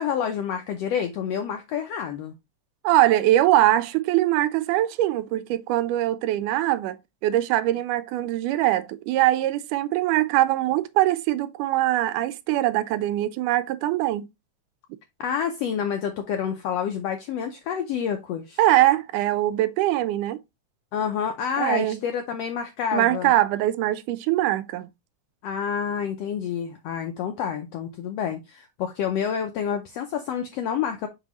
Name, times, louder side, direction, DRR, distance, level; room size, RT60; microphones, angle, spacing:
voice 1, 0.0-2.3 15.2-18.6 20.9-23.3 25.4-31.1, left 8 dB, 85° left, 1.4 m, -28 dB
voice 2, 2.8-7.0 7.2-14.3 18.6-20.4 21.6-22.0 22.9-24.9, right 14 dB, 90° right, 2.1 m, -22 dB
5.9 x 5.5 x 3.0 m
omnidirectional pair, 3.6 m